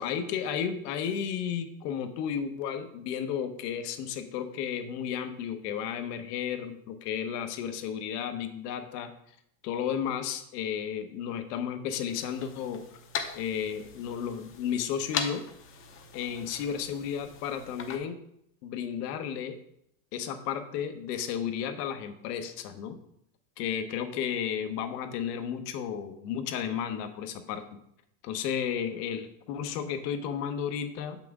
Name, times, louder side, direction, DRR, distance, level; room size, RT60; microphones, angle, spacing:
voice 1, 0.0-9.1 9.6-12.8 13.3-15.4 16.1-18.2 18.6-19.5 20.1-23.0 23.6-27.6 28.2-31.2, left 8 dB, 75° left, 7 dB, 1.0 m, -33 dB
sound 1, 12.1-18.0, left 6 dB, 25° left, 0.7 m, -40 dB
7.0 x 5.9 x 3.6 m, 0.72 s
supercardioid pair, 135°, 48 cm